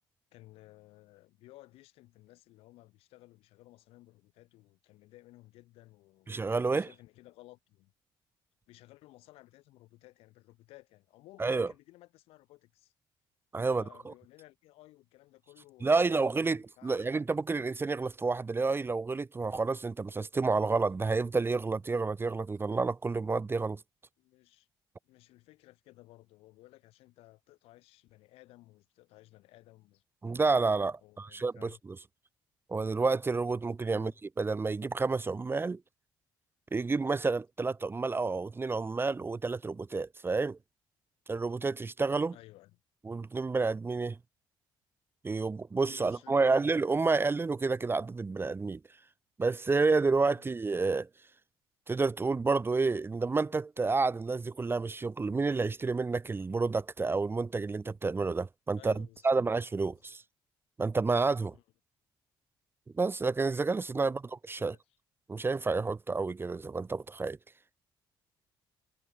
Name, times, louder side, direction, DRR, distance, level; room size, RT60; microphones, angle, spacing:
voice 1, 0.3-6.3 6.6-7.9 8.7-12.9 13.6-17.2 24.2-24.7 25.0-30.0 31.0-31.8 33.9-34.1 42.3-42.8 45.4-45.5 45.9-46.7 50.3-50.5 58.8-59.4 59.9-60.2 61.5-61.6 64.0-64.2 64.6-64.8, left 18 dB, 80° left, 7.3 m, -57 dB
voice 2, 6.3-6.9 11.4-11.7 13.5-14.1 15.8-16.6 16.8-23.8 30.2-31.7 32.7-34.1 34.4-35.8 36.7-40.6 41.3-42.3 43.1-44.2 45.2-48.8 49.4-51.1 51.9-60.2 60.8-61.5 63.0-64.2 64.5-64.7 65.3-67.4, right 3 dB, 25° right, 0.5 m, -29 dB
supercardioid pair, 70°, 10 cm